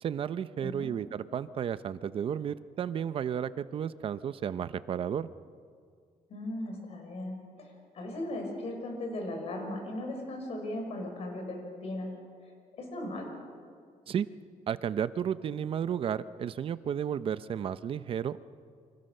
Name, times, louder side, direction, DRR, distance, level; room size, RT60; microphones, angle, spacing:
voice 1, 0.0-5.3 14.1-14.3 14.7-18.4, right 8 dB, 45° right, 14 dB, 0.7 m, -33 dB
voice 2, 0.6-0.9 6.3-12.1 12.4-13.3, left 1 dB, 50° left, 2 dB, 6.2 m, -38 dB
29.0 x 25.5 x 6.6 m, 2.1 s
cardioid pair, 175°, 13 cm